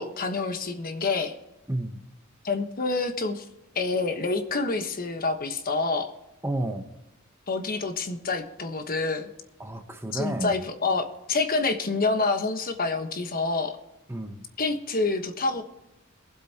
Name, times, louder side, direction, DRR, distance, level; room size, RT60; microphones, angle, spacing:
voice 1, 0.0-1.3 2.4-3.4 3.7-6.1 7.5-9.3 10.1-13.8 14.6-15.6, left 3 dB, 45° left, 6 dB, 1.2 m, -27 dB
voice 2, 1.7-2.0 6.4-6.9 9.6-10.5 14.1-14.4, right 1 dB, 10° right, 6 dB, 0.9 m, -31 dB
22.5 x 8.0 x 2.9 m, 0.96 s
head